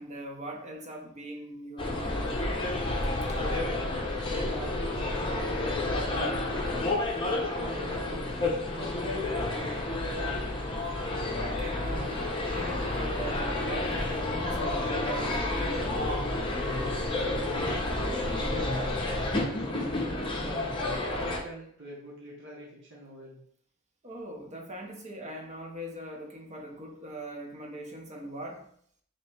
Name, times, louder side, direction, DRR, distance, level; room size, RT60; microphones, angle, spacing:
voice 1, 0.0-2.6 3.2-3.4 11.4-16.1 24.0-28.7, right 1 dB, 35° right, 0 dB, 0.8 m, -41 dB
Elephant & Castle - Shopping Centre, 1.8-21.4, left 2 dB, 25° left, 0.7 m, -30 dB
voice 2, 4.3-6.6 7.2-8.4 8.7-10.4 17.7-20.0 20.4-23.4, right 1 dB, 60° right, -4 dB, 1.2 m, -44 dB
3.1 x 3.0 x 4.4 m, 0.64 s
head